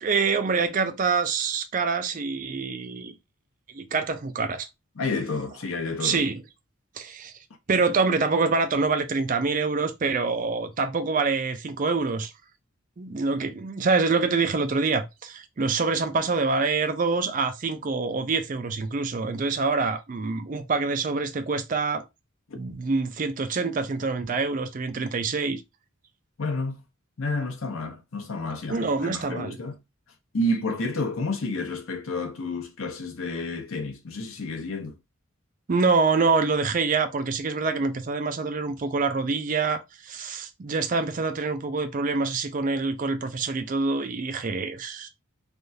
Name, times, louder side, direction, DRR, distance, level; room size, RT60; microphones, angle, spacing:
voice 1, 0.0-3.1 3.7-4.7 6.0-6.4 7.0-7.3 7.7-12.3 13.0-22.0 22.5-25.6 28.7-29.6 35.7-45.1, right 4 dB, 40° right, 0.4 m, -26 dB
voice 2, 5.0-6.2 22.5-22.6 26.4-26.8 27.2-29.8 30.3-34.9, left 2 dB, 80° left, 0.8 m, -30 dB
3.4 x 2.3 x 2.6 m
head